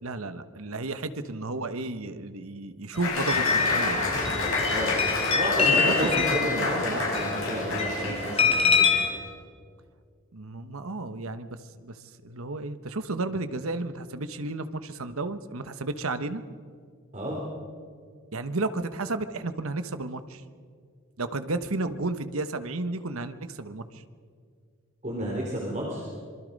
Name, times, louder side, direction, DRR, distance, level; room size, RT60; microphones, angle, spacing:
voice 1, 0.0-4.0 5.6-7.0 10.3-12.0 12.2-16.4 18.3-20.4 21.2-24.0, right 2 dB, 75° right, 11 dB, 1.2 m, -33 dB
Applause, 3.0-8.7, left 3 dB, 70° left, 7.2 m, -29 dB
sound 1, 3.0-9.1, left 5 dB, 25° left, 3.2 m, -26 dB
voice 2, 4.7-5.0 5.3-8.9 17.1-17.4 25.0-26.0, equal, 30° right, -3 dB, 3.6 m, -31 dB
26.5 x 23.0 x 5.3 m, 2.1 s
head